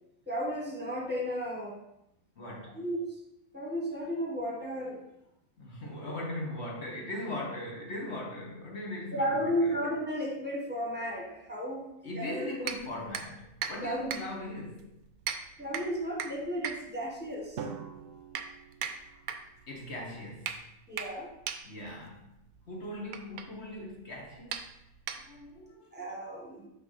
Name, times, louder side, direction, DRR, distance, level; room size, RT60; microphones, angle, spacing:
voice 1, 0.3-1.8 2.7-3.0 3.5-5.0 6.0-6.2 9.1-11.8 12.1-12.8 13.8-14.1 15.6-17.6 20.9-21.3 25.9-26.7, equal, 5° right, -2 dB, 1.3 m, -33 dB
voice 2, 2.4-2.8 5.6-9.8 12.0-15.0 19.1-19.2 19.7-20.6 21.6-22.3 22.7-24.6 25.1-26.1, left 1 dB, 50° left, -2 dB, 1.5 m, -40 dB
sound 1, 12.6-25.6, right 7 dB, 85° right, 1.1 m, -41 dB
Drum, 17.6-19.7, right 6 dB, 70° right, 0.5 m, -44 dB
5.9 x 3.4 x 5.8 m, 0.83 s
omnidirectional pair, 1.5 m